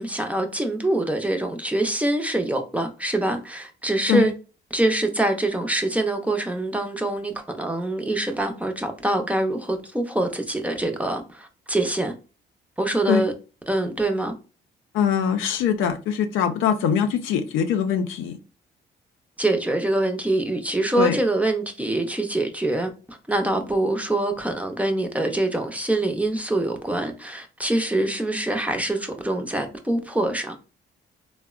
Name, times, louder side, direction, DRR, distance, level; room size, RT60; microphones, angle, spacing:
voice 1, 0.0-4.3 4.7-12.1 12.8-13.3 13.7-14.3 19.4-30.6, right 1 dB, 5° right, 0.5 m, -24 dB
voice 2, 14.9-18.4 21.0-21.2, left 8 dB, 90° left, 0.5 m, -22 dB
3.5 x 2.0 x 2.3 m
cardioid pair, 90°, 20 cm